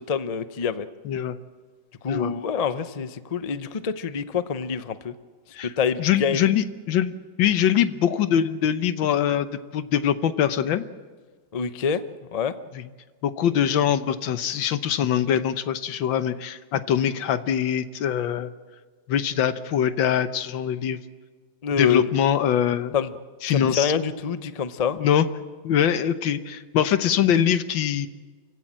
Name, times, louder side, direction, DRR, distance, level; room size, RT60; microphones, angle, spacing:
voice 1, 0.1-0.9 2.0-5.1 5.6-6.5 11.5-12.0 12.3-12.5 21.6-22.0 22.9-23.1 23.5-25.0, left 6 dB, 55° left, 12 dB, 0.4 m, -26 dB
voice 2, 1.0-1.4 2.1-2.3 5.5-5.7 6.0-9.5 9.7-10.8 12.7-12.9 13.2-18.5 19.1-21.0 21.8-22.9 23.4-23.9 25.0-25.3 25.6-28.1, left 9 dB, 90° left, 12 dB, 1.7 m, -23 dB
28.5 x 16.0 x 7.5 m, 1.5 s
omnidirectional pair, 2.0 m